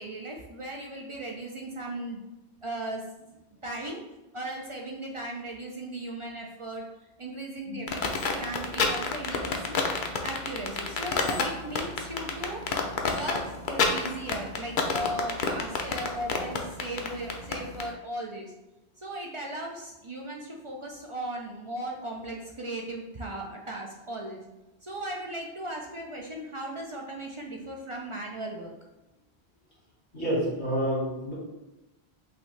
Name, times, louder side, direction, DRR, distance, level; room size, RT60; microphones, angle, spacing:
voice 1, 0.0-2.2 2.6-3.0 3.6-4.0 4.3-6.8 7.2-8.0 8.3-9.9 10.2-12.7 13.0-18.5 19.0-24.4 24.8-28.7, right 1 dB, 40° right, -1 dB, 0.4 m, -37 dB
sound 1, 7.9-17.9, left 5 dB, 55° left, 0.7 m, -28 dB
voice 2, 30.1-31.3, equal, 90° left, -6 dB, 2.1 m, -29 dB
5.7 x 2.7 x 3.2 m, 1.0 s
omnidirectional pair, 1.1 m